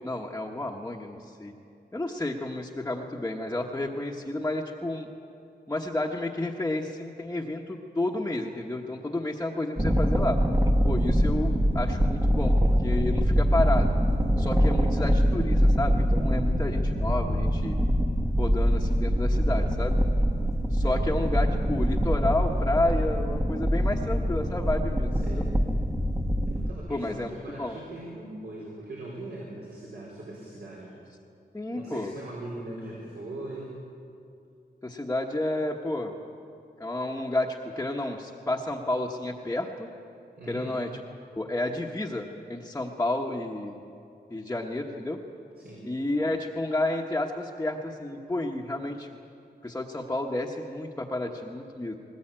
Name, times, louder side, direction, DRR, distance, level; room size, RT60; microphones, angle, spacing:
voice 1, 0.0-1.5 1.9-5.1 5.7-10.4 10.8-14.0 14.4-17.8 18.4-20.0 20.7-25.5 26.9-27.8 31.5-32.1 34.8-36.1 36.8-39.9 40.5-40.9 41.3-43.8 44.3-45.2 45.8-49.1 49.6-51.9, left 2 dB, 15° left, -2 dB, 1.2 m, -31 dB
sound 1, 9.8-26.7, equal, 20° right, 1.3 m, -24 dB
voice 2, 25.1-25.5 26.4-30.9 31.7-33.8 40.3-40.8 45.6-45.9, right 2 dB, 70° right, -4 dB, 4.5 m, -40 dB
20.5 x 19.0 x 8.9 m, 2.6 s
wide cardioid pair, 150°, 17 cm